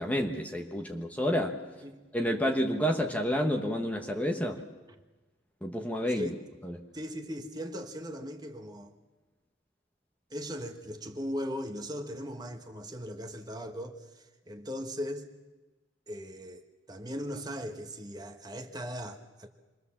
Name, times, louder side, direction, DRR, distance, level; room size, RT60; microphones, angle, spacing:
voice 1, 0.0-1.6 2.1-4.6 5.6-6.3 6.6-6.8, equal, 10° left, 2 dB, 1.2 m, -29 dB
voice 2, 6.9-8.9 10.3-15.3 16.1-16.6 16.9-19.5, equal, 20° right, 6 dB, 1.5 m, -38 dB
27.0 x 22.0 x 7.3 m, 1.2 s
head